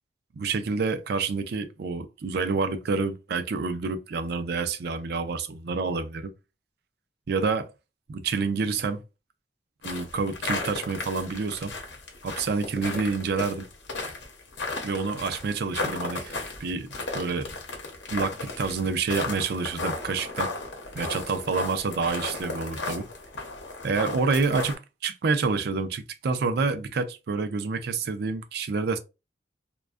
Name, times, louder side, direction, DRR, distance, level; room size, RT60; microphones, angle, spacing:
voice 1, 0.3-6.3 7.3-7.7 8.1-9.0 9.8-11.7 12.2-13.7 14.8-17.5 18.1-20.5 20.9-23.1 23.8-29.0, right 4 dB, 60° right, 0.4 m, -28 dB
sound 1, 9.8-24.8, left 3 dB, 75° left, 0.8 m, -35 dB
2.5 x 2.2 x 2.3 m
head